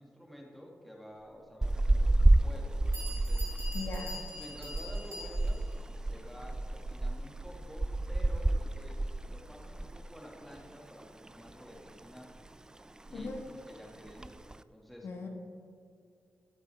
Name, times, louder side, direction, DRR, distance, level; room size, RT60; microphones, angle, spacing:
voice 1, 0.0-3.5 4.4-12.3 13.1-15.1, equal, ahead, -2 dB, 2.3 m, -50 dB
sound 1, 1.6-10.1 10.4-10.6 11.0-11.8 12.2-12.5 12.8-12.9 13.1-13.5 14.1-14.6, right 2 dB, 15° right, 0.3 m, -30 dB
Bell, 2.6-2.7 2.9-5.7, left 1 dB, 65° right, 2.3 m, -44 dB
voice 2, 3.7-4.2 13.1-13.4 15.0-15.3, left 3 dB, 70° left, 1 dB, 1.6 m, -39 dB
15.5 x 9.2 x 3.6 m, 2.4 s
cardioid pair, 100°, 5 cm